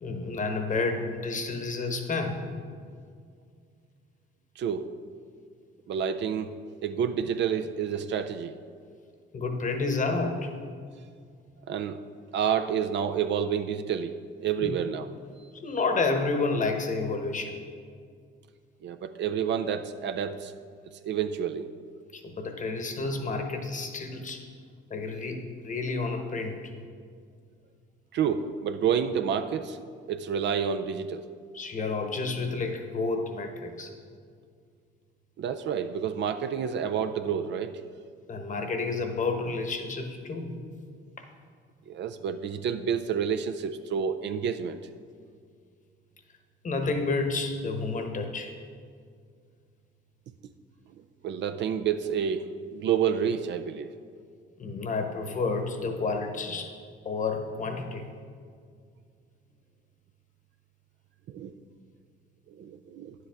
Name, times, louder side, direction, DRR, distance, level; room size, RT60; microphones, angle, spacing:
voice 1, 0.0-2.4 9.3-10.5 14.6-14.7 15.5-17.6 22.1-24.4 24.9-26.6 31.5-33.9 38.3-40.6 46.6-48.5 54.6-56.7 57.0-58.1, left 3 dB, 40° left, 5 dB, 1.1 m, -30 dB
voice 2, 4.6-4.9 5.9-6.5 6.8-8.5 11.7-12.0 12.3-14.2 14.4-15.1 18.8-20.5 21.0-21.7 28.1-29.8 30.1-31.3 35.4-37.7 41.9-44.8 51.2-53.9 61.3-61.5 62.5-63.2, right 7 dB, 65° right, 8 dB, 0.4 m, -29 dB
9.5 x 7.8 x 3.5 m, 2.1 s
cardioid pair, 90°, 20 cm